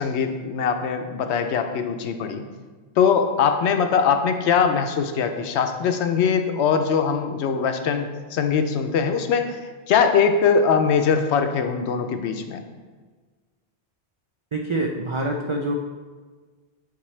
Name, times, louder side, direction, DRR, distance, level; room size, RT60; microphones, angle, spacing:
voice 1, 0.0-2.4 3.0-9.6 9.9-12.6, left 6 dB, 85° left, 7 dB, 0.9 m, -21 dB
voice 2, 14.5-15.7, right 2 dB, 50° right, 1 dB, 0.3 m, -26 dB
6.0 x 5.9 x 3.2 m, 1.4 s
omnidirectional pair, 1.1 m